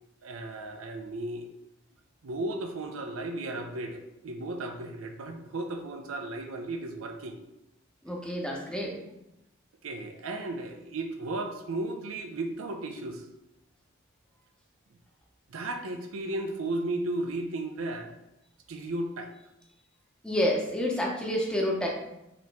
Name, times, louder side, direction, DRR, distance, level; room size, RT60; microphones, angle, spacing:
voice 1, 0.2-1.5 2.2-7.4 8.6-8.8 9.8-13.3 15.5-18.1 18.7-19.3, right 2 dB, 80° right, 5 dB, 0.5 m, -35 dB
voice 2, 8.0-8.9 20.2-21.9, left 1 dB, 5° left, -2 dB, 0.7 m, -28 dB
5.0 x 3.0 x 3.4 m, 0.90 s
head